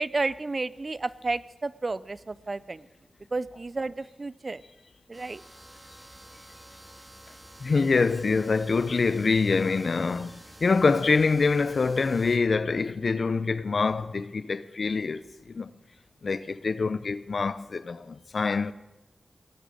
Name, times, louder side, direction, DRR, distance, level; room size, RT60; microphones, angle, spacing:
voice 1, 0.0-2.8 3.3-4.6 5.1-5.4, right 3 dB, 40° right, 0.5 m, -31 dB
sound 1, 5.1-12.4, right 1 dB, 15° right, 1.9 m, -50 dB
voice 2, 7.6-15.7 16.2-18.7, left 4 dB, 60° left, 0.6 m, -25 dB
19.0 x 10.5 x 5.0 m
wide cardioid pair, 85°, 0 cm